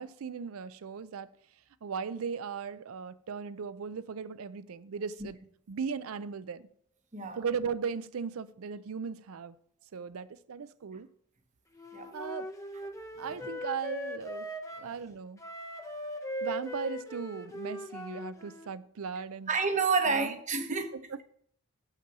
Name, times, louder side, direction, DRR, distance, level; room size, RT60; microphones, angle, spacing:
voice 1, 0.0-1.3 1.8-5.4 5.7-6.7 7.4-9.6 9.9-11.1 12.1-12.5 13.2-14.5 14.8-15.4 16.4-19.5 20.1-20.4 20.9-21.2, right 6 dB, 75° right, 0.5 m, -37 dB
Wind instrument woodwind instrument, 11.7-14.9 15.4-18.7, equal, 15° left, 0.6 m, -40 dB
voice 2, 19.5-20.9, right 4 dB, 35° right, 0.9 m, -29 dB
6.9 x 5.7 x 5.9 m
head